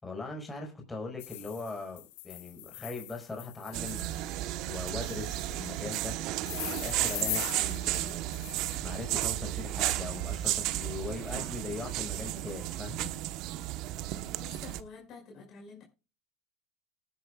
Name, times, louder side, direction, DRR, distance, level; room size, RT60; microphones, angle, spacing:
voice 1, 0.0-4.1 4.6-6.2 6.5-8.2 8.8-13.1, left 3 dB, 15° left, 5.5 m, -40 dB
sound 1, 1.2-4.4 5.0-5.8 6.5-8.8, left 19 dB, 75° left, 0.8 m, -41 dB
sound 2, 3.7-14.8, right 15 dB, 60° right, 1.1 m, -33 dB
voice 2, 14.4-15.8, left 4 dB, 50° left, 5.7 m, -48 dB
19.5 x 10.5 x 2.4 m
hypercardioid pair, 95°, 0 cm